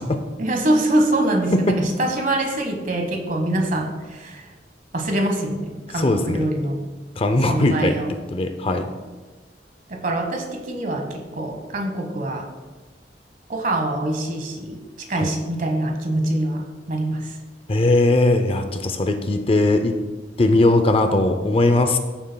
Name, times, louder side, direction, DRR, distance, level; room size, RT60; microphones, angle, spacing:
voice 1, 0.4-4.4 4.9-6.8 7.5-8.1 9.9-12.4 13.5-14.8 15.1-16.6 16.9-17.3, right 1 dB, 50° right, 3 dB, 1.3 m, -24 dB
voice 2, 5.9-6.5 7.2-8.0 8.3-8.9 15.2-15.3 17.7-20.0 20.4-22.0, left 2 dB, 35° left, 7 dB, 0.5 m, -19 dB
14.5 x 7.1 x 2.2 m, 1.3 s
head